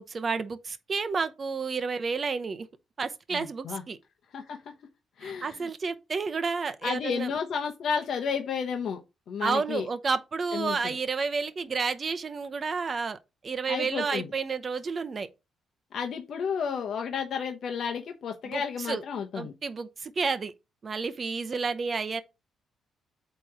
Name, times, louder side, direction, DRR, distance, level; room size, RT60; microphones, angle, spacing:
voice 1, 0.0-2.7 3.0-4.0 5.2-7.3 9.4-13.2 13.4-15.3 18.4-19.0 19.3-20.5 20.8-22.2, right 4 dB, 30° right, 0.7 m, -30 dB
voice 2, 3.3-3.8 4.3-4.6 5.2-5.7 6.8-9.0 9.3-9.9 10.5-10.9 13.7-14.3 15.9-19.5, left 6 dB, 55° left, 0.9 m, -32 dB
8.2 x 3.1 x 4.8 m
cardioid pair, 145°, 0 cm